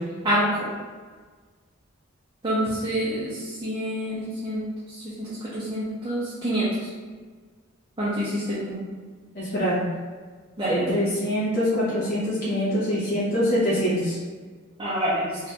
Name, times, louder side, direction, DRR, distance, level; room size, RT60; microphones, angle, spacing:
voice 1, 2.4-4.6 5.2-6.7 8.0-8.8 10.6-10.9 14.8-15.4, equal, 25° right, -9 dB, 0.6 m, -27 dB
voice 2, 9.3-9.8 10.7-14.2, equal, 50° left, -10 dB, 1.0 m, -24 dB
2.7 x 2.5 x 3.4 m, 1.5 s
head